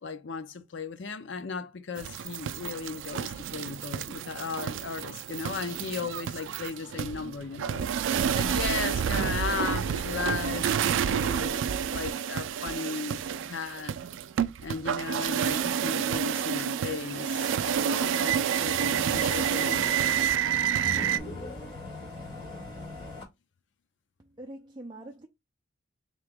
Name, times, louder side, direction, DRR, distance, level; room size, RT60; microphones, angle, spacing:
voice 1, 0.0-11.5 11.9-14.0 14.6-19.8, left 5 dB, 70° left, 0.6 m, -36 dB
sound 1, 2.0-21.2, right 8 dB, 85° right, 0.3 m, -29 dB
sound 2, 18.3-23.2, left 2 dB, 30° left, 1.9 m, -40 dB
voice 2, 24.2-25.3, right 1 dB, 25° right, 0.5 m, -44 dB
3.6 x 2.8 x 3.5 m
head